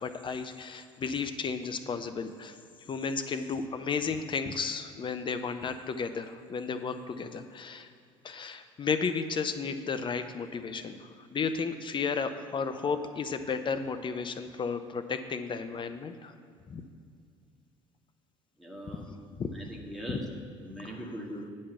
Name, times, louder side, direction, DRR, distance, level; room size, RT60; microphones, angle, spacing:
voice 1, 0.0-2.6 2.9-7.9 8.2-16.3 16.7-16.8 19.3-19.6 20.1-20.2 20.8-21.0, left 5 dB, 30° left, 9 dB, 0.6 m, -33 dB
voice 2, 18.6-19.1 19.5-20.3 20.6-21.5, right 1 dB, ahead, -2 dB, 2.1 m, -41 dB
8.5 x 5.5 x 7.0 m, 2.3 s
figure-of-eight pair, 55°, 16 cm